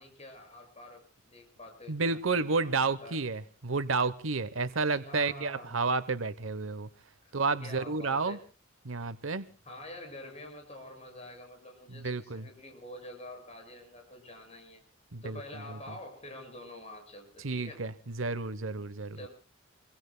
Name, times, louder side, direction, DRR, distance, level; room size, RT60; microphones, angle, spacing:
voice 1, 0.0-3.2 4.5-5.7 7.2-7.3 7.6-8.4 9.6-14.8 15.2-17.8 19.1-19.3, left 1 dB, 35° left, 7.4 m, -47 dB
voice 2, 1.9-6.9 7.3-8.4 8.8-9.5 11.9-12.5 15.1-15.4 15.7-15.8 17.4-19.2, right 4 dB, 80° right, 1.1 m, -31 dB
26.5 x 23.5 x 2.3 m
head